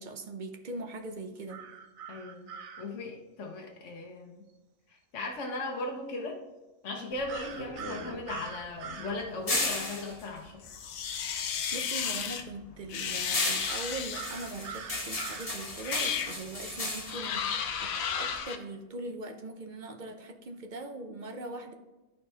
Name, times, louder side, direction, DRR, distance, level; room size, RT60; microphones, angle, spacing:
voice 1, 0.0-1.6 11.4-21.7, right 2 dB, 45° right, 5 dB, 0.8 m, -41 dB
sound 1, 1.5-2.9 7.3-9.2 13.6-15.5, right 6 dB, 80° right, 1.2 m, -43 dB
voice 2, 2.1-4.5 4.9-6.4 6.8-10.6, left 2 dB, 65° left, 0 dB, 1.3 m, -38 dB
sound 2, 7.1-11.6 12.0-18.4, left 2 dB, 30° left, 1.2 m, -36 dB
sound 3, 10.6-12.4 12.9-14.5 15.2-15.3 15.8-16.4 17.1-18.6, left 7 dB, 90° left, 1.2 m, -33 dB
12.5 x 4.4 x 3.4 m, 1.1 s
omnidirectional pair, 1.4 m